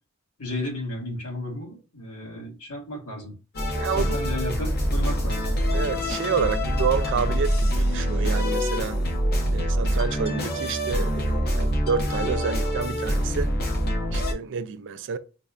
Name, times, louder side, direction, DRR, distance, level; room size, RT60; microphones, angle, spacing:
voice 1, 0.4-3.3 3.9-5.5, left 1 dB, 75° left, 1.5 m, -33 dB
sound 1, 3.5-14.3, equal, 45° left, 0.7 m, -25 dB
voice 2, 3.7-4.2 5.7-9.0 9.5-13.5 14.1-15.2, right 6 dB, 55° right, 0.4 m, -29 dB
5.2 x 2.2 x 2.4 m
head